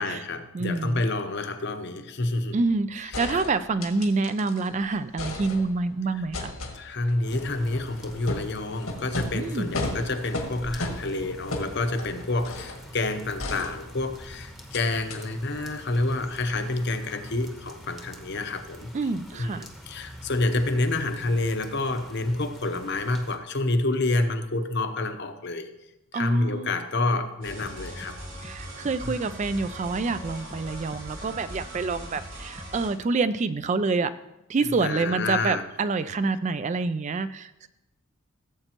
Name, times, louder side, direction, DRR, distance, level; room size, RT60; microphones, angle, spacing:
voice 1, 0.0-2.6 3.0-3.4 6.7-18.9 19.3-25.7 26.1-28.2 29.0-29.2 34.8-35.6, left 2 dB, 50° left, 7 dB, 0.8 m, -28 dB
voice 2, 0.5-1.0 2.5-6.5 9.3-9.8 18.9-19.6 26.1-26.7 28.4-34.1 34.5-37.7, right 3 dB, 35° right, 13 dB, 0.3 m, -27 dB
sound 1, 2.7-2.8 3.1-4.7 5.0-5.9 6.3-12.9 13.4-14.2 14.7-14.8 15.1-15.2, left 2 dB, 80° left, 1.6 m, -35 dB
sound 2, 7.2-23.4, equal, ahead, 0.9 m, -45 dB
sound 3, 27.4-32.9, right 1 dB, 80° right, 4.3 m, -40 dB
16.0 x 7.9 x 3.0 m, 0.90 s
head